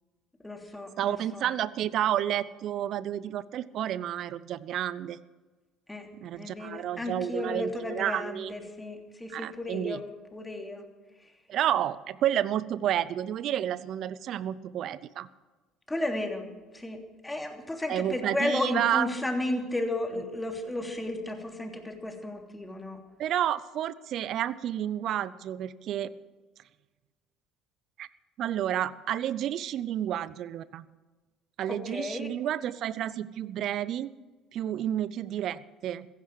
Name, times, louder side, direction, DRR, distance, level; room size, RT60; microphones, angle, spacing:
voice 1, 0.4-1.5 5.9-6.1 6.4-10.0 10.3-10.9 15.9-16.5 16.7-23.0 31.7-32.3, left 1 dB, 10° left, 3 dB, 3.1 m, -33 dB
voice 2, 1.0-5.2 6.2-8.5 9.3-10.0 11.5-15.3 17.9-19.1 23.2-26.1 28.0-28.1 28.4-30.9 31.6-34.1 34.5-36.1, right 11 dB, 55° right, 18 dB, 0.7 m, -30 dB
16.0 x 15.5 x 4.9 m, 1.3 s
hypercardioid pair, 60°, 0 cm